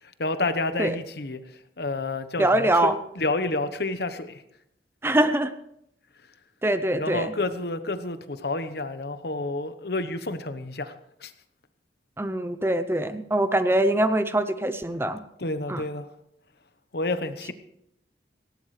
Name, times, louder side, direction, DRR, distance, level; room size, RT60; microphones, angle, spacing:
voice 1, 0.0-4.4 7.0-11.3 15.4-16.1 16.9-17.5, left 2 dB, 60° left, 10 dB, 1.1 m, -30 dB
voice 2, 2.4-3.0 5.0-5.5 6.6-7.3 12.2-15.2 15.7-15.8, right 1 dB, 15° right, 11 dB, 0.6 m, -23 dB
18.5 x 17.0 x 3.3 m, 0.75 s
head